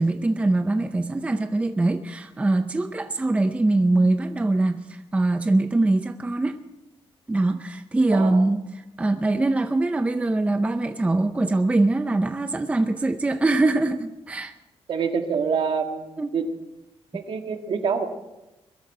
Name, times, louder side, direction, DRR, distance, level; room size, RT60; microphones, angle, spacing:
voice 1, 0.0-6.6 7.3-8.6 9.0-14.5 16.2-16.3, right 2 dB, 10° right, 8 dB, 0.5 m, -23 dB
voice 2, 8.1-8.4 14.9-16.0 16.3-16.5 17.1-18.1, right 6 dB, 55° right, 5 dB, 1.7 m, -26 dB
21.5 x 13.0 x 4.8 m, 0.98 s
wide cardioid pair, 180°, 11 cm